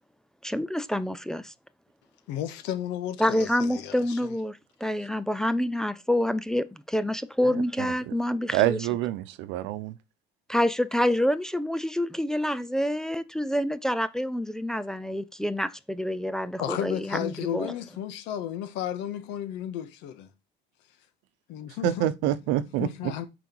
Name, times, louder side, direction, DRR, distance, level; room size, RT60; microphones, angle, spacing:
voice 1, 0.4-1.5 3.2-8.8 10.5-17.7, left 1 dB, 5° left, 0.4 m, -27 dB
voice 2, 2.3-4.3 16.6-20.3 21.5-22.1 22.8-23.3, left 10 dB, 75° left, 1.7 m, -33 dB
voice 3, 7.4-7.9 8.5-9.9 21.8-23.1, right 13 dB, 85° right, 0.9 m, -27 dB
9.1 x 5.1 x 4.6 m
cardioid pair, 175°, 19 cm